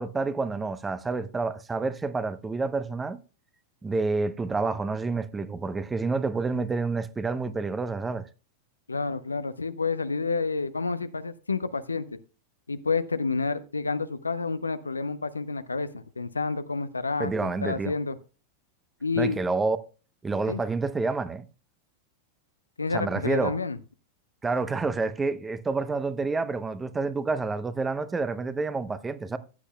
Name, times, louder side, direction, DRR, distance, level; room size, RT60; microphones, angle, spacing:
voice 1, 0.0-3.2 3.8-8.3 17.2-17.9 19.2-19.8 20.2-21.4 22.9-23.6 24.4-29.4, right 3 dB, 15° right, 0.8 m, -28 dB
voice 2, 8.9-12.2 12.7-18.2 19.0-19.4 20.5-20.6 22.8-23.8, left 4 dB, 80° left, 0.7 m, -29 dB
14.5 x 9.9 x 2.2 m
figure-of-eight pair, 90°, 0 cm